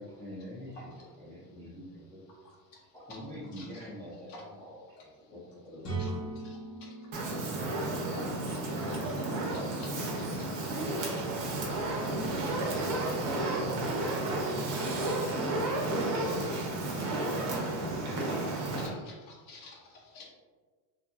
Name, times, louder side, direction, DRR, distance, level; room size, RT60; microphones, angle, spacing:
voice 1, 0.0-2.2 2.9-6.3, equal, 5° left, -11 dB, 0.3 m, -45 dB
voice 2, 3.5-3.9 4.3-4.4 6.0-6.1 6.4-6.6 8.1-8.2 8.9-9.0 9.5-9.9 18.8-19.7 20.1-20.2, left 3 dB, 60° left, -2 dB, 0.6 m, -49 dB
sound 1, 5.8-9.6, right 2 dB, 30° left, 0.9 m, -40 dB
Fire, 7.1-18.9, right 2 dB, 40° right, 0.6 m, -32 dB
voice 3, 10.7-12.6 13.0-16.7, right 3 dB, 85° right, 4 dB, 0.6 m, -44 dB
2.7 x 2.6 x 2.3 m, 1.4 s
cardioid pair, 150°, 48 cm